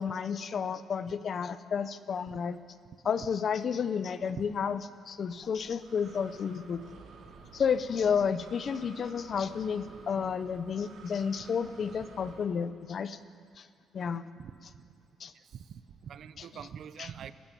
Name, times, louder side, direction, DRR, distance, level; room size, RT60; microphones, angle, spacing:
voice 1, 0.0-2.6 3.0-6.8 7.5-13.2 13.6-13.7 13.9-14.3 15.2-15.3 16.4-16.5 17.0-17.1, left 6 dB, 40° left, 13 dB, 0.8 m, -31 dB
Breathing, 5.3-12.4, right 4 dB, 70° right, 4.1 m, -52 dB
voice 2, 15.5-17.3, right 8 dB, 50° right, 13 dB, 0.9 m, -44 dB
30.0 x 12.5 x 9.2 m, 2.3 s
cardioid pair, 165°, 0 cm